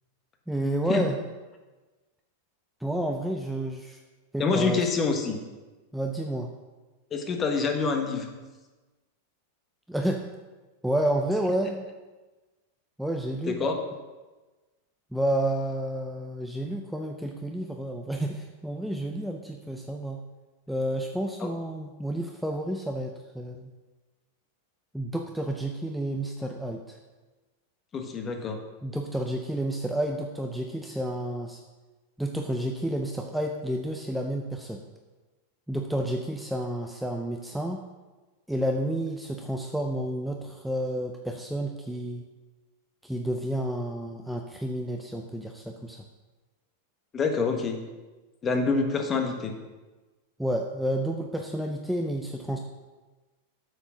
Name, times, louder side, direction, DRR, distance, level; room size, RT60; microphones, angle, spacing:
voice 1, 0.5-1.2 2.8-4.0 4.3-4.9 5.9-6.5 9.9-10.3 10.8-11.8 13.0-13.6 15.1-20.2 20.7-23.7 24.9-27.0 28.8-31.6 32.2-34.8 35.7-37.8 38.5-42.2 43.0-46.0 50.4-52.6, right 1 dB, ahead, 2 dB, 0.7 m, -30 dB
voice 2, 4.4-5.4 7.1-8.3 13.5-13.8 21.4-21.5 27.9-28.6 47.1-47.8 48.4-49.5, left 4 dB, 25° left, 4 dB, 1.4 m, -26 dB
7.9 x 6.0 x 6.2 m, 1.2 s
hypercardioid pair, 125°, 0 cm